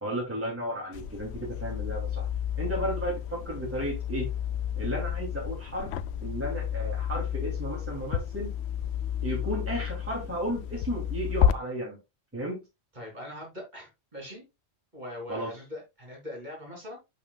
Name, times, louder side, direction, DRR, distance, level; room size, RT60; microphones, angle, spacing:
voice 1, 0.0-2.3 2.6-4.3 4.8-5.9 6.2-8.5 9.2-12.0 12.3-12.6 15.3-15.5, equal, 10° right, -2 dB, 2.7 m, -33 dB
sound 1, 0.9-11.5, left 9 dB, 75° left, 0.8 m, -31 dB
voice 2, 12.9-14.4 14.9-17.0, left 1 dB, 40° right, -1 dB, 3.4 m, -41 dB
11.0 x 4.3 x 2.3 m, 0.23 s
omnidirectional pair, 1.1 m